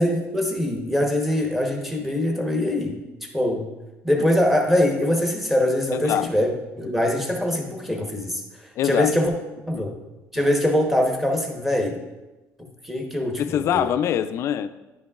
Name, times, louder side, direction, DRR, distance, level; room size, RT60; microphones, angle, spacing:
voice 1, 0.0-3.7 4.0-9.3 9.7-9.9 10.3-12.0 12.8-13.9, left 1 dB, 5° right, 1 dB, 1.0 m, -23 dB
voice 2, 5.9-6.3 8.8-9.1 9.7-9.9 10.4-10.5 13.4-14.7, left 10 dB, 50° left, 12 dB, 0.3 m, -24 dB
10.5 x 5.2 x 2.4 m, 1.1 s
cardioid pair, 145°, 6 cm